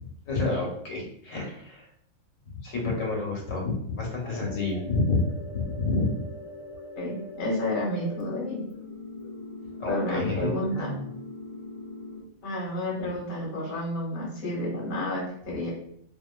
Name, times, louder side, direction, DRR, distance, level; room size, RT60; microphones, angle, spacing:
voice 1, 0.3-1.9 2.6-5.3 5.5-6.1 9.8-11.1, left 3 dB, 85° left, -1 dB, 1.1 m, -29 dB
sound 1, 4.2-12.2, left 2 dB, 65° left, 0.3 m, -42 dB
voice 2, 7.0-8.6 9.9-10.9 12.4-15.7, left 1 dB, 45° left, -6 dB, 1.0 m, -30 dB
2.5 x 2.5 x 2.2 m, 0.66 s
omnidirectional pair, 1.3 m